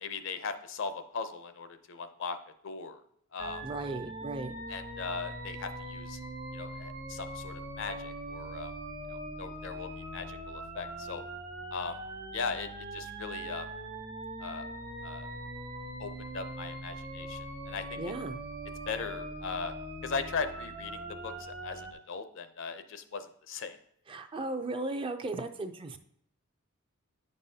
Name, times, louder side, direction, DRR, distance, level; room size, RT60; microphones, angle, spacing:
voice 1, 0.0-2.4 2.6-3.0 3.3-3.6 4.7-6.2 6.5-8.7 9.1-11.2 11.7-12.0 12.3-13.7 14.4-14.7 15.0-15.3 16.0-18.0 18.9-19.7 20.0-23.8, left 5 dB, 65° left, 10 dB, 0.6 m, -38 dB
sound 1, 3.4-21.9, right 1 dB, 45° right, 1.0 m, -41 dB
voice 2, 3.6-4.5 18.0-18.4 24.1-26.0, right 2 dB, 25° right, 7 dB, 0.4 m, -36 dB
9.1 x 5.3 x 2.8 m, 0.69 s
head